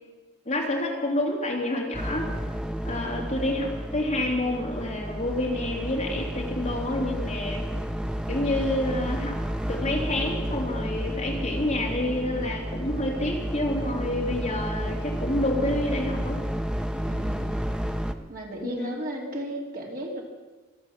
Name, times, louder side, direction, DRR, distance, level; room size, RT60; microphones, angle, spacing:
voice 1, 0.4-2.3 2.8-7.6 8.3-9.4 9.7-16.4 18.6-19.0, left 1 dB, 35° left, -2 dB, 3.2 m, -28 dB
sound 1, 1.9-18.1, equal, 5° right, 0.7 m, -31 dB
voice 2, 17.1-17.6 18.3-20.2, equal, 45° right, 0 dB, 2.6 m, -34 dB
24.5 x 8.1 x 7.3 m, 1.3 s
head